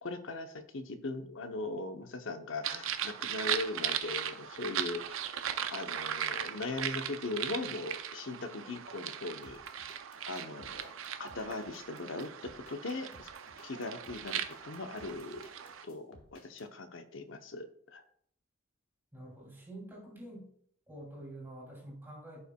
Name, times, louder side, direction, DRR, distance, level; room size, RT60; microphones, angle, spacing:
voice 1, 0.0-5.2 5.7-9.9 10.3-10.9 11.2-13.3 13.6-15.5 15.8-18.0, left 2 dB, 65° left, 8 dB, 0.8 m, -39 dB
sound 1, 2.6-15.8, right 9 dB, 70° right, 0.5 m, -38 dB
sound 2, 9.4-16.7, left 2 dB, 90° left, 1.4 m, -58 dB
voice 2, 19.1-20.5 20.9-22.4, right 1 dB, 10° right, -4 dB, 2.8 m, -47 dB
14.5 x 5.6 x 2.3 m, 0.65 s
head